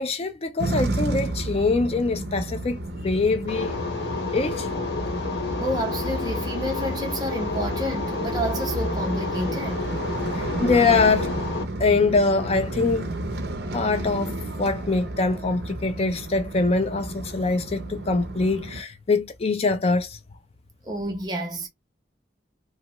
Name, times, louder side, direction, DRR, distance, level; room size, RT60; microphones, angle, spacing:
voice 1, 0.0-3.7 4.3-4.7 10.3-11.3 11.8-13.1 13.7-20.2, left 3 dB, 35° left, 0.4 m, -23 dB
sound 1, 0.6-18.8, right 2 dB, 65° right, 0.6 m, -31 dB
sound 2, 3.5-11.6, left 4 dB, 70° left, 1.1 m, -31 dB
voice 2, 5.6-10.0 20.8-21.7, equal, 25° right, 0.8 m, -29 dB
2.8 x 2.2 x 2.9 m
head